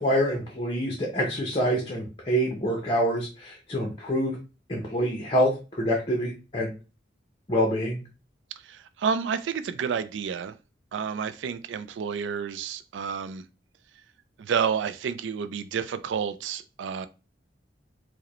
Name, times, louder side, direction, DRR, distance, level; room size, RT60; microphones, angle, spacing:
voice 1, 0.0-4.4 4.7-6.7 7.5-8.0, equal, 30° left, 0.7 m, -26 dB
voice 2, 8.7-10.5 10.9-13.4 14.4-17.1, right 6 dB, 90° right, 0.3 m, -30 dB
4.8 x 2.1 x 2.9 m
head